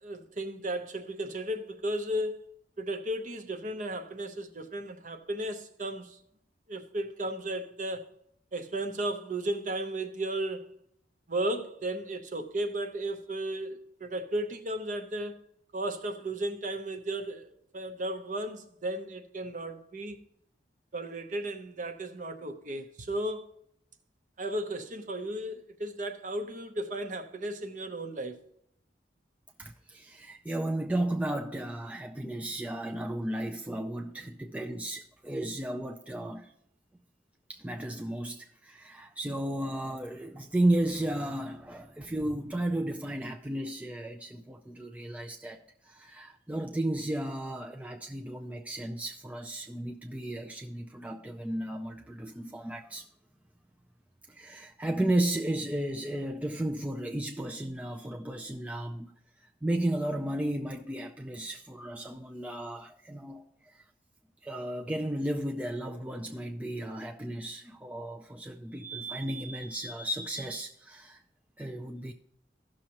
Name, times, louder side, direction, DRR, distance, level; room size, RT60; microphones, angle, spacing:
voice 1, 0.0-2.4 2.8-6.2 6.7-8.1 8.5-10.7 11.3-15.4 15.7-20.2 20.9-23.5 24.4-28.4, right 1 dB, 45° right, 0.8 m, -34 dB
voice 2, 29.6-36.5 37.5-45.6 45.8-53.1 54.3-59.1 59.6-63.8 64.4-71.2 71.6-72.1, right 1 dB, 10° right, 0.3 m, -34 dB
15.5 x 6.3 x 2.9 m
head